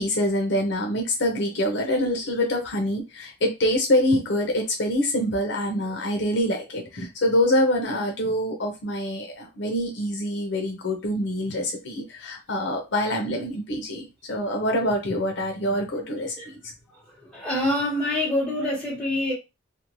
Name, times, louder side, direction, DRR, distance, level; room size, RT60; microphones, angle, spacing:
voice 1, 0.0-16.3, left 1 dB, 65° left, 0.7 m, -25 dB
voice 2, 16.9-19.3, left 1 dB, 5° left, 1.4 m, -26 dB
2.6 x 2.1 x 3.0 m
head